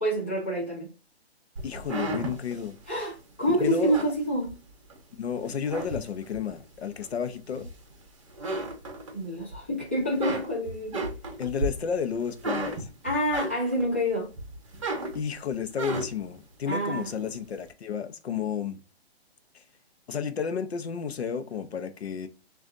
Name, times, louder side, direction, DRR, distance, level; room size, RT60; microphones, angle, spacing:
voice 1, 0.0-0.9 2.9-4.5 9.1-11.1 13.0-14.3 16.7-17.3, equal, 10° left, 0.5 m, -27 dB
voice 2, 1.6-2.8 3.6-4.0 5.2-7.7 11.4-12.9 15.1-18.8 19.5-19.6 20.1-22.3, left 7 dB, 75° left, 0.7 m, -32 dB
sound 1, 1.6-5.0 5.4-6.5 7.0-8.0 8.3-9.6 9.9-13.9 14.3-16.3, right 2 dB, 30° right, 0.8 m, -34 dB
6.3 x 2.5 x 2.5 m
hypercardioid pair, 175°, 32 cm